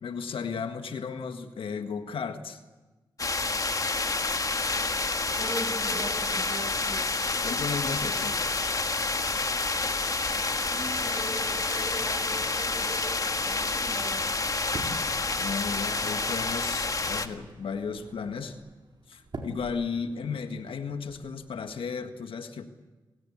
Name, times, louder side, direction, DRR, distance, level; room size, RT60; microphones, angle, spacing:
voice 1, 0.0-2.6 7.4-8.4 15.4-18.6 19.1-22.7, left 5 dB, 85° left, 8 dB, 1.7 m, -34 dB
sound 1, 3.2-17.3, left 3 dB, 40° left, 1.6 m, -29 dB
voice 2, 5.3-7.0 10.5-14.3, right 1 dB, 40° right, 6 dB, 7.1 m, -40 dB
sound 2, 6.7-18.5, left 2 dB, 75° right, 6.4 m, -53 dB
sound 3, 11.1-21.9, right 2 dB, 60° right, 4.5 m, -47 dB
28.0 x 16.5 x 8.7 m, 1.2 s
cardioid pair, 50°, 9 cm